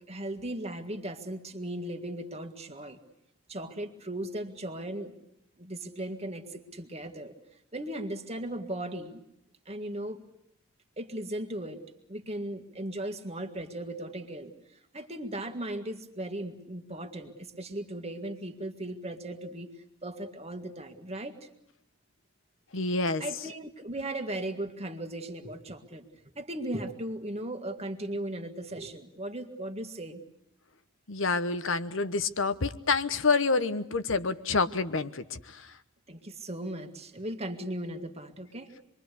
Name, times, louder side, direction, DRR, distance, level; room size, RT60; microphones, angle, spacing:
voice 1, 0.0-3.0 3.5-5.2 5.6-7.3 7.7-9.2 9.7-10.2 11.0-11.8 12.1-19.7 20.0-21.4 23.2-26.1 26.4-30.2 36.1-38.7, right 1 dB, 30° right, 7 dB, 1.8 m, -37 dB
voice 2, 22.7-23.2 31.1-35.8, left 4 dB, 65° left, 12 dB, 1.2 m, -28 dB
26.5 x 22.5 x 8.3 m, 0.77 s
head